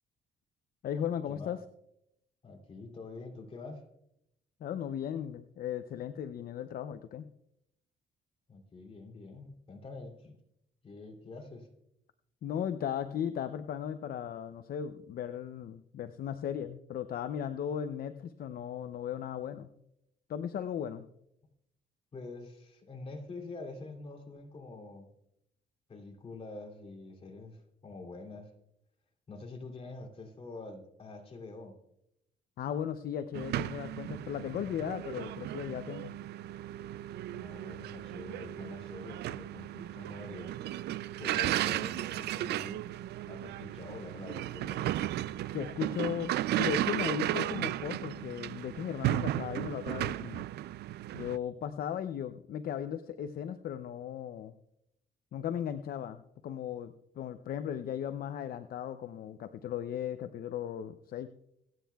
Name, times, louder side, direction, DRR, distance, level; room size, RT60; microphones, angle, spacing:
voice 1, 0.8-1.6 4.6-7.3 12.4-19.7 20.3-21.1 32.6-36.1 45.5-46.3 46.6-50.5 51.1-54.5 55.3-61.3, left 9 dB, 60° left, 11 dB, 0.5 m, -36 dB
voice 2, 2.4-3.8 8.5-10.3 10.8-11.7 22.1-25.1 25.9-28.5 29.3-31.8 37.3-40.5 41.2-42.8 43.3-44.8, left 3 dB, 35° left, 1 dB, 2.8 m, -46 dB
sound 1, 33.3-51.4, right 14 dB, 70° right, 0.4 m, -35 dB
26.0 x 9.3 x 2.3 m, 0.81 s
cardioid pair, 115°, 18 cm